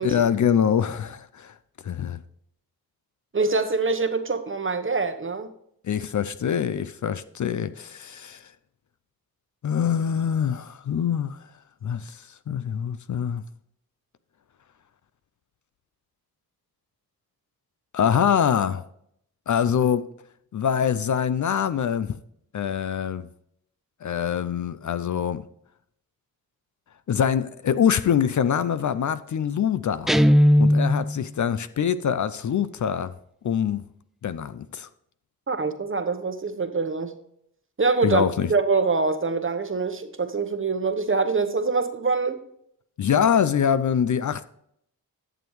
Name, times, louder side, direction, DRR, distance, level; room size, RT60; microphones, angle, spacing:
voice 1, 0.0-1.5 1.8-2.2 5.8-8.4 9.6-11.4 11.8-12.2 12.5-13.4 17.9-18.8 19.5-20.1 20.5-22.2 22.5-23.2 24.0-25.4 27.1-30.1 30.6-33.1 33.4-33.8 34.2-34.9 38.0-38.5 43.0-44.4, left 8 dB, 50° left, 0.5 m, -24 dB
voice 2, 3.3-5.5 35.5-37.2 37.8-38.2 38.5-42.4, right 4 dB, 35° right, 1.0 m, -24 dB
Guitar, 30.1-31.2, equal, ahead, 0.3 m, -17 dB
11.0 x 7.1 x 3.2 m
cardioid pair, 60°, 37 cm